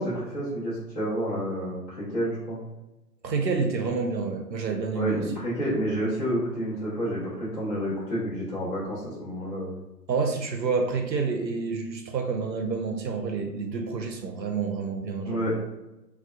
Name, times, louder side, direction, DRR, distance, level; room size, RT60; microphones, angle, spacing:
voice 1, 0.0-2.6 4.9-9.8 15.2-15.6, equal, 25° left, -10 dB, 0.9 m, -29 dB
voice 2, 3.2-5.2 10.1-15.4, right 4 dB, 90° right, 3 dB, 0.6 m, -28 dB
2.7 x 2.2 x 2.2 m, 0.98 s
figure-of-eight pair, 135°, 50 cm